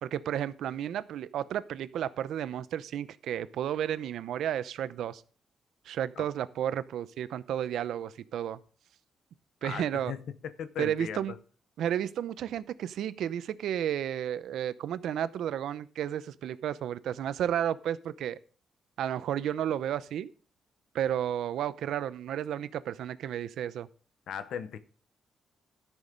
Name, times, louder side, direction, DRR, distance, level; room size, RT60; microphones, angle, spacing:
voice 1, 0.0-5.2 5.9-8.6 9.6-10.1 10.8-11.3 11.8-18.4 19.0-20.3 20.9-23.9, right 10 dB, 85° right, 0.6 m, -32 dB
voice 2, 9.6-11.2 24.3-24.8, left 8 dB, 75° left, 0.9 m, -38 dB
13.0 x 6.4 x 5.2 m
cardioid pair, 145°, 0 cm